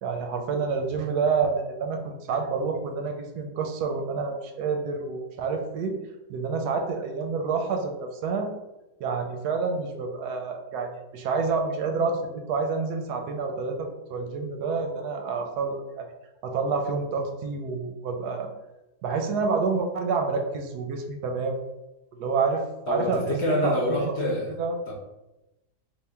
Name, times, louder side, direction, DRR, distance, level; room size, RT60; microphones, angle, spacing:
voice 1, 0.0-6.0 6.3-8.5 9.0-16.1 16.4-18.5 19.0-21.6 22.1-24.1 24.6-24.8, right 4 dB, 85° right, 4 dB, 1.2 m, -28 dB
voice 2, 22.9-24.5 24.9-25.0, left 1 dB, 55° left, -2 dB, 0.8 m, -26 dB
3.6 x 2.4 x 3.4 m, 0.98 s
omnidirectional pair, 1.7 m